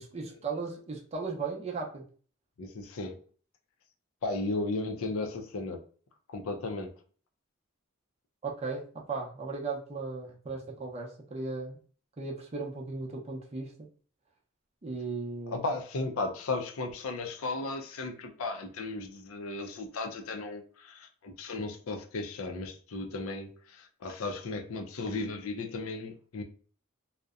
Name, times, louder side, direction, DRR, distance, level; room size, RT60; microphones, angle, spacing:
voice 1, 0.0-2.0 8.4-11.8 12.2-13.7 14.8-15.6, right 4 dB, 30° right, 0.5 m, -36 dB
voice 2, 2.6-3.2 4.2-5.8 6.3-6.9 15.5-26.4, left 3 dB, 75° left, 0.5 m, -35 dB
2.6 x 2.0 x 2.3 m
head